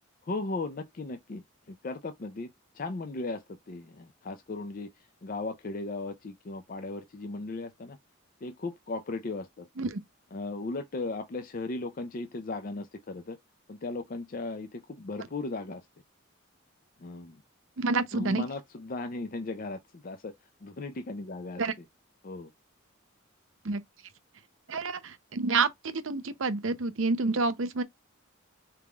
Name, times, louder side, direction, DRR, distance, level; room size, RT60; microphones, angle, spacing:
voice 1, 0.3-8.0 8.4-9.7 10.3-13.4 13.7-15.8 17.0-17.4 18.1-20.3 20.6-21.6 22.2-22.5, left 3 dB, 40° left, 0.5 m, -37 dB
voice 2, 17.8-18.4 21.6-21.7 23.6-23.8 24.7-27.8, right 3 dB, 65° right, 0.7 m, -28 dB
4.4 x 3.6 x 2.3 m
head